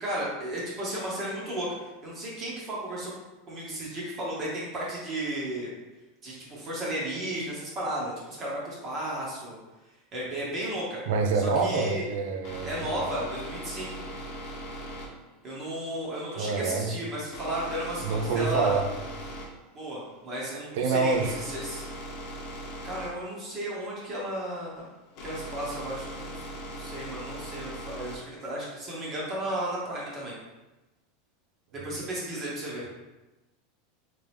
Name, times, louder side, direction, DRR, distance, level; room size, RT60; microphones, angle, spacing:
voice 1, 0.0-1.7 2.0-3.1 3.5-5.7 6.2-9.6 10.1-11.0 11.3-12.0 12.6-14.0 15.4-18.8 19.7-21.8 22.8-24.9 25.2-30.3 31.7-32.9, right 1 dB, 30° right, -5 dB, 1.1 m, -34 dB
voice 2, 11.1-12.9 16.3-16.9 18.0-18.9 20.7-21.4, right 4 dB, 70° right, 4 dB, 0.5 m, -26 dB
sound 1, 12.0-28.4, equal, 45° left, 0.9 m, -40 dB
3.4 x 3.1 x 3.4 m, 1.1 s
supercardioid pair, 150°, 0 cm